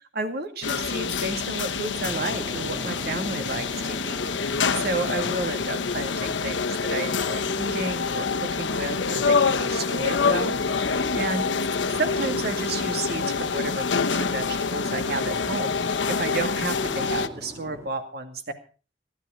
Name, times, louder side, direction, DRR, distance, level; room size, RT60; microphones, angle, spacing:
voice 1, 0.1-11.5 11.9-18.5, right 2 dB, 60° right, 6 dB, 2.3 m, -32 dB
sound 1, 0.6-17.3, left 5 dB, 85° left, 0.9 m, -26 dB
sound 2, 1.9-17.9, equal, 15° right, 2.7 m, -43 dB
16.5 x 12.0 x 5.1 m, 0.38 s
head